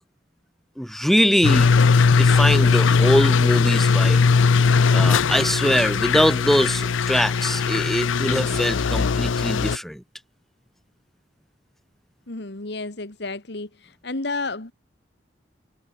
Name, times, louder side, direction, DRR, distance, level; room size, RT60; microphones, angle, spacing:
voice 1, 0.8-1.7 2.2-4.2 4.9-10.0, equal, ahead, 1.1 m, -22 dB
sound 1, 1.4-9.8, left 5 dB, 90° left, 0.5 m, -19 dB
voice 2, 12.3-14.7, left 3 dB, 60° left, 1.8 m, -31 dB
head